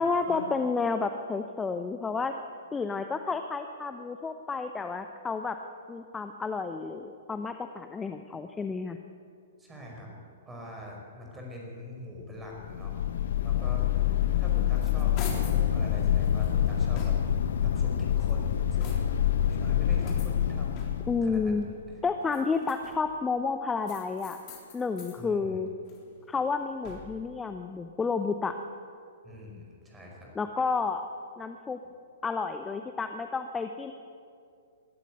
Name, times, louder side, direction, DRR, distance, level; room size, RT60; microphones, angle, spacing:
voice 1, 0.0-2.3 2.7-5.6 5.9-9.0 21.1-21.7 22.0-24.4 24.7-25.7 26.3-28.6 30.3-31.0 31.4-31.8 32.2-33.9, left 4 dB, 10° left, 7 dB, 0.8 m, -30 dB
voice 2, 9.7-10.1 10.5-13.0 13.4-13.9 14.4-17.2 17.6-19.2 19.5-20.8 21.2-21.5 25.2-25.6 29.2-30.3, left 1 dB, 10° right, 0 dB, 5.3 m, -43 dB
sound 1, 12.5-21.9, left 10 dB, 55° left, 1.0 m, -27 dB
sound 2, 14.6-15.7 16.2-17.5 18.1-19.3 20.0-21.3 22.2-23.2 23.8-25.2 25.6-27.3, left 4 dB, 35° left, 3.7 m, -46 dB
22.0 x 12.5 x 9.3 m, 2.4 s
figure-of-eight pair, 110°, 0 cm